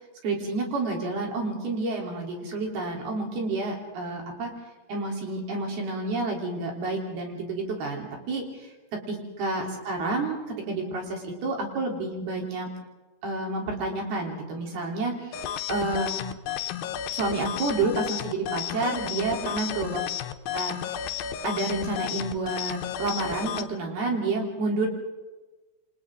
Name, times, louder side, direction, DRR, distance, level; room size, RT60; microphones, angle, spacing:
voice 1, 0.2-4.5 4.9-8.7 9.1-10.4 10.7-12.7 13.2-16.2 17.1-20.0 20.5-20.8 21.4-24.9, right 2 dB, 85° right, 0 dB, 5.7 m, -29 dB
sound 1, 15.3-23.7, left 10 dB, 80° left, 2.7 m, -33 dB
28.5 x 25.5 x 3.9 m, 1.2 s
omnidirectional pair, 4.3 m